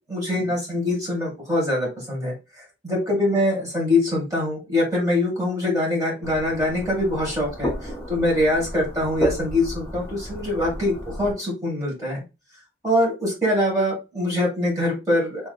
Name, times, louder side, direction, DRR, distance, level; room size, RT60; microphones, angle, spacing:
voice 1, 0.1-2.4 2.8-12.2 12.8-15.5, left 1 dB, 20° right, -3 dB, 1.7 m, -23 dB
sound 1, 6.2-11.3, left 1 dB, 15° left, 0.8 m, -32 dB
3.1 x 2.8 x 3.9 m, 0.26 s
head